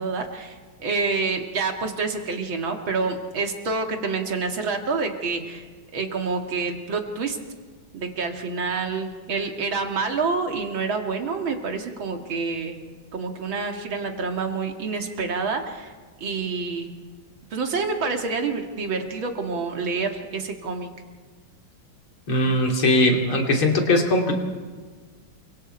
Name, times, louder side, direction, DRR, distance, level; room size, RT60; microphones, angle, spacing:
voice 1, 0.0-5.6 5.9-7.4 7.9-12.8 13.1-15.9 16.2-16.9 17.5-20.9, right 4 dB, 70° right, 3 dB, 2.9 m, -27 dB
voice 2, 22.3-24.3, left 1 dB, 85° left, 1 dB, 3.7 m, -20 dB
28.5 x 24.5 x 4.5 m, 1.4 s
omnidirectional pair, 2.2 m